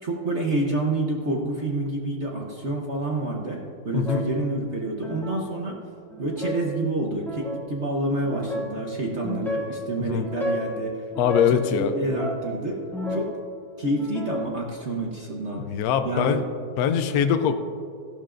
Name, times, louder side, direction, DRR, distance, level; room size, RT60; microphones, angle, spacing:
voice 1, 0.0-5.8 6.2-11.1 11.5-12.8 13.1-13.4 13.8-15.6 16.0-16.4, right 2 dB, 45° right, -1 dB, 0.9 m, -28 dB
voice 2, 3.9-4.2 10.0-10.3 11.2-11.9 15.6-16.4 16.8-17.6, left 8 dB, 90° left, 8 dB, 0.8 m, -23 dB
sound 1, 4.0-4.4 5.0-5.4 6.1-6.6 7.2-7.6 8.2-8.8 9.2-9.7 10.2-10.8 11.1-11.6 12.0-13.4 13.8-14.6, left 1 dB, ahead, 1.7 m, -32 dB
14.5 x 12.0 x 2.5 m, 2.4 s
omnidirectional pair, 2.3 m